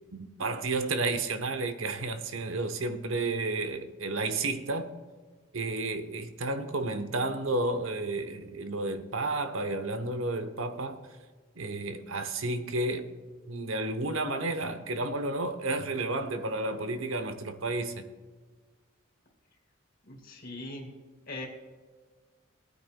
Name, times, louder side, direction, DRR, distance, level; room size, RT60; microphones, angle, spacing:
voice 1, 0.1-4.9 5.5-11.0 11.6-13.1 13.5-18.1, right 2 dB, 80° right, 0.9 m, -31 dB
voice 2, 20.0-20.9 21.3-21.5, left 2 dB, 45° left, 2.4 m, -40 dB
21.5 x 9.4 x 2.2 m
head